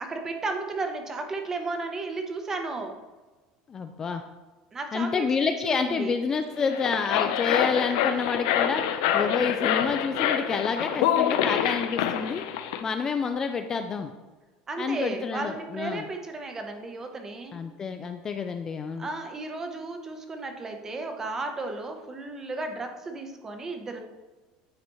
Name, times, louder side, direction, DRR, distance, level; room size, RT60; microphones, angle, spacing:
voice 1, 0.0-3.0 4.7-5.3 5.6-6.1 14.7-17.6 19.0-24.0, right 3 dB, 20° right, 5 dB, 0.8 m, -34 dB
voice 2, 3.7-4.2 4.9-8.8 9.1-12.4 12.8-14.1 14.8-16.1 17.5-19.1, left 5 dB, 25° left, 7 dB, 0.3 m, -28 dB
sound 1, 6.6-12.8, left 9 dB, 85° left, 0.5 m, -26 dB
9.4 x 4.1 x 3.0 m, 1.2 s
cardioid pair, 145°, 2 cm